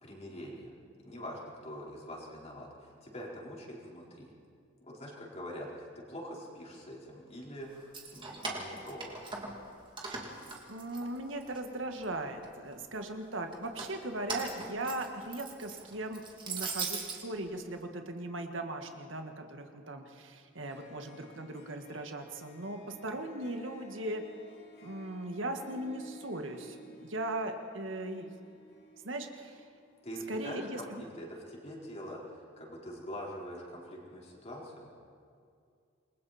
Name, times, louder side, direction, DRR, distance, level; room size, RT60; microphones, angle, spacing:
voice 1, 0.0-0.7 1.0-4.3 4.8-9.2 30.0-34.9, equal, 35° left, -3 dB, 4.4 m, -44 dB
Keys jangling, 7.8-9.7 10.0-11.6 12.0-12.7 13.5-17.2, right 4 dB, 25° right, 2.7 m, -40 dB
voice 2, 10.7-24.2 24.8-28.6 29.0-29.6 30.3-31.0, right 1 dB, 85° right, 5 dB, 1.8 m, -38 dB
Harp, 20.6-30.1, left 1 dB, 60° left, 4.8 m, -55 dB
27.5 x 21.5 x 4.3 m, 2.3 s
head